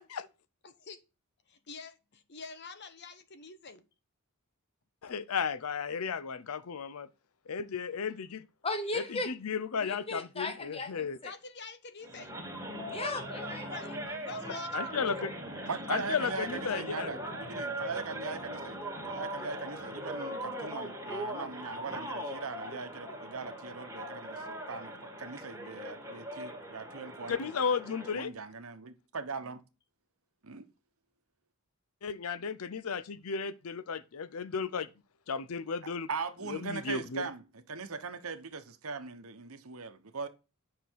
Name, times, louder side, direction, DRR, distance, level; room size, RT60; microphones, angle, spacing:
voice 1, 1.7-3.8 11.2-12.3 13.6-13.9 14.2-15.3, left 4 dB, 50° left, 1.0 m, -46 dB
voice 2, 5.0-7.1 7.5-8.4 8.9-11.2 14.7-15.3 15.9-17.2 27.3-28.3 32.0-34.9 35.3-36.1 36.5-37.3, left 6 dB, 75° left, 0.6 m, -34 dB
voice 3, 8.6-9.3 9.8-11.3 12.9-14.2, left 2 dB, 25° left, 1.3 m, -37 dB
sound 1, 12.0-28.2, equal, 15° right, 2.1 m, -40 dB
voice 4, 15.7-18.8 19.0-27.5 28.1-29.6 30.4-30.6 36.1-40.3, right 4 dB, 70° right, 1.1 m, -40 dB
9.4 x 5.8 x 4.6 m
head